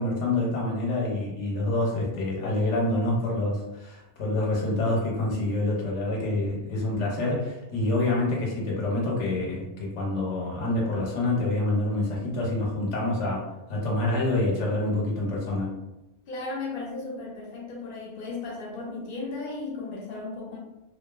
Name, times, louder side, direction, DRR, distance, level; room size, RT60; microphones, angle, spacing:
voice 1, 0.0-15.7, left 2 dB, 80° left, -3 dB, 1.0 m, -27 dB
voice 2, 16.3-20.6, left 3 dB, 50° left, -3 dB, 0.8 m, -35 dB
2.6 x 2.4 x 2.3 m, 0.98 s
omnidirectional pair, 1.2 m